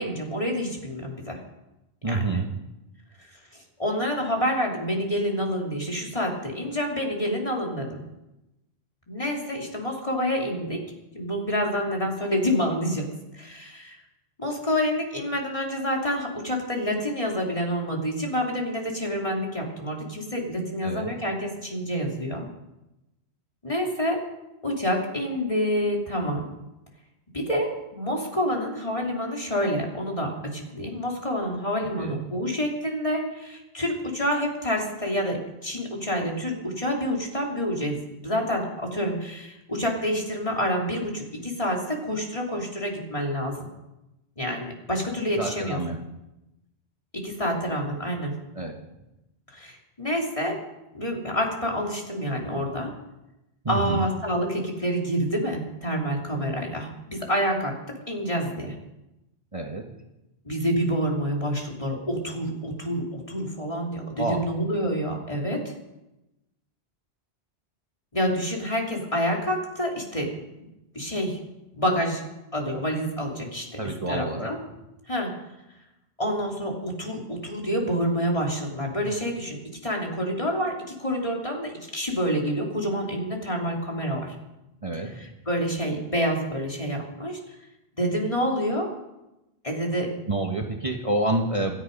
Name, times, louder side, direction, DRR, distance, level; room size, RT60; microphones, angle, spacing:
voice 1, 0.0-1.4 2.1-2.2 3.2-8.0 9.1-10.8 11.1-13.1 13.3-14.0 14.4-22.5 23.6-24.2 24.6-26.5 27.3-43.7 44.4-45.8 47.1-48.3 49.5-50.6 50.9-52.9 53.7-58.7 60.4-65.7 68.1-70.3 70.9-71.4 71.7-72.2 72.5-73.8 74.1-74.6 75.1-75.3 76.2-84.3 84.9-87.6 88.0-88.9 89.6-90.1, equal, 30° left, -1 dB, 3.3 m, -28 dB
voice 2, 2.0-2.5 20.8-21.1 32.0-32.2 45.4-46.0 48.5-48.7 53.6-54.1 59.5-59.8 64.2-64.5 73.8-74.5 84.8-85.3 90.3-91.8, right 2 dB, 30° right, 1 dB, 1.5 m, -28 dB
26.5 x 10.0 x 5.4 m, 0.95 s
omnidirectional pair, 1.1 m